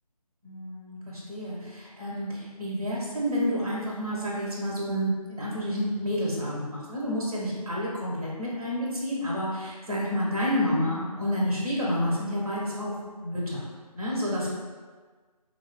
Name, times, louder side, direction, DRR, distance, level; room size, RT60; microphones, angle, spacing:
voice 1, 0.4-12.9 13.2-13.7 13.9-14.5, equal, 65° right, -5 dB, 1.0 m, -29 dB
3.1 x 2.3 x 2.2 m, 1.5 s
figure-of-eight pair, 170°, 20 cm